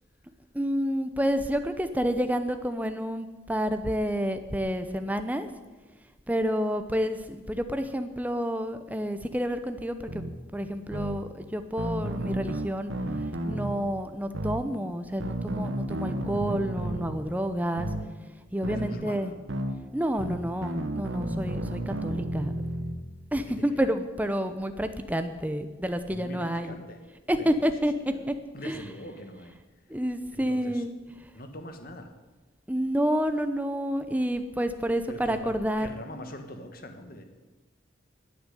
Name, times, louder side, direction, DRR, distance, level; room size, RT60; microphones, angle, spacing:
voice 1, 0.5-5.5 6.3-10.2 10.5-12.9 13.4-17.9 18.5-19.3 19.9-22.5 23.3-26.7 27.3-28.3 28.6-28.9 29.9-30.9 32.7-35.9, equal, 10° right, 9 dB, 0.7 m, -29 dB
sound 1, 10.1-10.3 10.9-11.2 11.8-13.8 14.3-14.6 15.2-17.2 17.8-18.0 18.6-18.9 19.5-19.7 20.2-23.0, right 1 dB, 80° right, 1.4 m, -32 dB
voice 2, 18.7-19.4 23.5-23.9 26.1-27.0 27.4-28.2 28.5-29.6 30.3-30.8 31.3-32.1 35.1-37.2, left 1 dB, 45° left, 6 dB, 1.5 m, -43 dB
10.5 x 9.2 x 9.9 m, 1.3 s
head